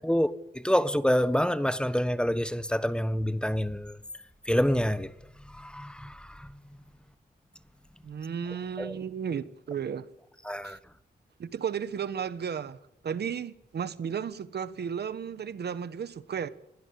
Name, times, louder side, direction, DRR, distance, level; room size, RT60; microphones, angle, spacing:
voice 1, 0.1-4.0 4.5-5.1 5.6-6.5 8.8-8.9 10.5-10.8, equal, 5° left, 1.3 m, -27 dB
voice 2, 8.0-10.1 10.6-10.8 11.4-12.8 13.0-16.5, right 7 dB, 75° right, 1.3 m, -34 dB
21.5 x 17.5 x 8.6 m
cardioid pair, 85°, 17 cm